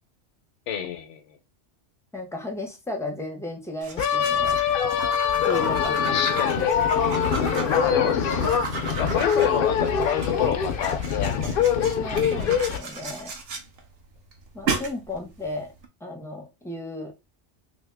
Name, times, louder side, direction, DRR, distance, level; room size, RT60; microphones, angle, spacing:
voice 1, 0.7-1.4 6.1-7.2 7.7-11.5, left 9 dB, 75° left, 1.0 m, -29 dB
voice 2, 2.1-4.6 5.4-6.2 12.0-13.3 14.5-15.7 16.0-17.1, left 1 dB, 5° left, 0.4 m, -34 dB
sound 1, 3.8-15.9, right 4 dB, 60° right, 0.8 m, -35 dB
sound 2, 4.0-12.8, left 7 dB, 60° left, 0.6 m, -23 dB
2.8 x 2.7 x 3.3 m
omnidirectional pair, 1.3 m